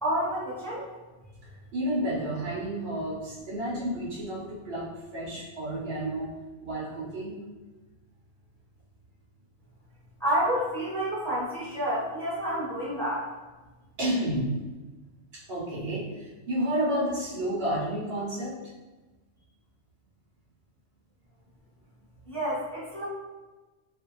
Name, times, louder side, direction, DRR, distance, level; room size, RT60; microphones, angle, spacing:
voice 1, 0.0-0.8 10.2-13.2 22.3-23.0, equal, ahead, -9 dB, 0.8 m, -29 dB
voice 2, 1.5-6.3 6.6-7.4 14.0-14.5 15.3-18.6, right 1 dB, 65° right, -5 dB, 0.8 m, -31 dB
2.5 x 2.1 x 2.9 m, 1.2 s
omnidirectional pair, 1.2 m